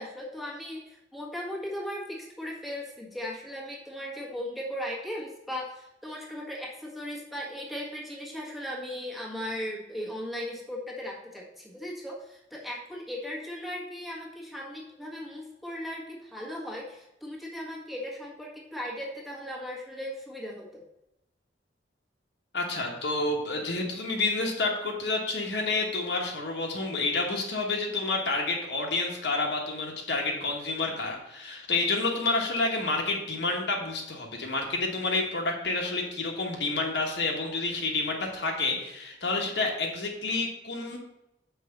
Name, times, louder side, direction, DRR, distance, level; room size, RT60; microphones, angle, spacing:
voice 1, 0.0-20.8, equal, ahead, -3 dB, 1.6 m, -37 dB
voice 2, 22.5-41.0, left 3 dB, 65° left, 0 dB, 1.3 m, -29 dB
5.9 x 4.7 x 6.4 m, 0.89 s
head